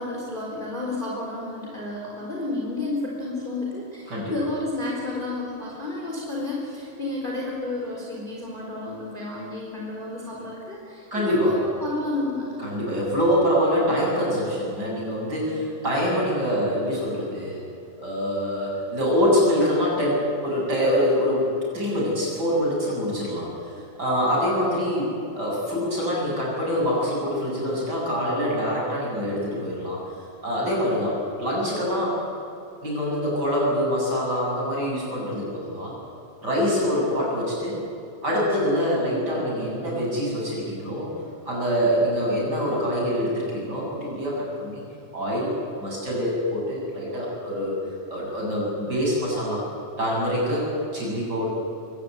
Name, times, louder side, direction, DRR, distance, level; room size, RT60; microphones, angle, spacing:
voice 1, 0.0-12.6, left 2 dB, 15° left, -3 dB, 4.3 m, -31 dB
voice 2, 11.1-11.6 12.6-17.6 18.0-21.5 21.7-23.5 24.0-30.0 30.4-32.2 32.8-35.9 36.4-37.8 38.2-41.1 41.5-44.8 45.1-45.5 45.8-47.8 48.1-49.6 50.0-51.5, equal, 30° right, -4 dB, 8.4 m, -25 dB
23.5 x 17.0 x 9.5 m, 2.7 s
omnidirectional pair, 3.7 m